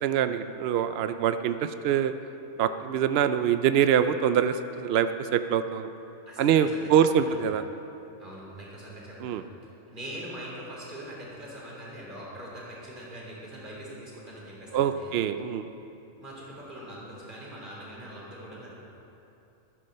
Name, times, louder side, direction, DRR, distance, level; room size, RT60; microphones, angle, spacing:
voice 1, 0.0-2.1 2.6-5.9 6.4-7.6 9.2-9.4 14.7-15.7, right 9 dB, 85° right, 10 dB, 0.5 m, -24 dB
voice 2, 6.3-7.4 8.2-9.5 9.9-15.2 16.2-18.7, right 1 dB, 30° right, -5 dB, 3.5 m, -42 dB
13.0 x 9.7 x 6.6 m, 2.8 s
omnidirectional pair, 1.6 m